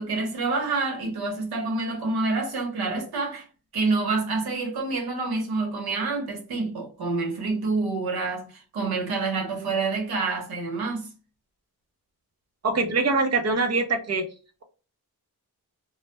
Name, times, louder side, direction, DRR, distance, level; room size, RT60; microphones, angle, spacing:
voice 1, 0.0-3.5 3.7-11.1, right 3 dB, 85° right, 1.0 m, -27 dB
voice 2, 12.6-14.2, right 3 dB, 45° right, 0.6 m, -23 dB
2.2 x 2.1 x 2.8 m
wide cardioid pair, 135°, 36 cm